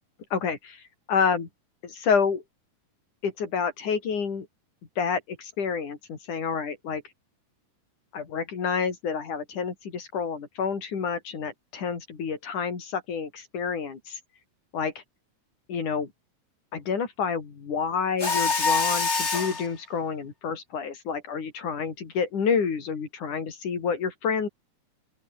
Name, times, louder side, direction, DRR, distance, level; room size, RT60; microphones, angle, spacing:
voice 1, 0.3-0.8 1.1-1.5 1.8-2.4 3.2-4.5 5.0-7.0 8.1-14.2 14.7-14.9 15.7-16.1 16.7-24.5, left 6 dB, 85° left, 5.3 m, -29 dB
Mechanisms, 18.2-19.7, left 4 dB, 25° left, 2.0 m, -25 dB
open air
omnidirectional pair, 3.5 m